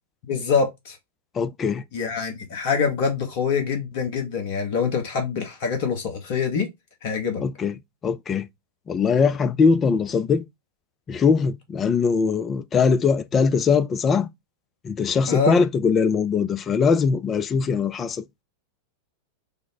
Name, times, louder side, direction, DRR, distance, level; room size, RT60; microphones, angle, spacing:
voice 1, 0.3-1.0 1.9-6.7 7.0-7.4 15.3-15.6, left 5 dB, 50° left, 1.0 m, -25 dB
voice 2, 1.4-1.8 7.4-7.7 8.0-8.5 8.9-10.4 11.1-14.3 14.8-18.2, left 5 dB, 25° left, 0.3 m, -21 dB
3.4 x 2.0 x 3.9 m
figure-of-eight pair, 90°, 0 cm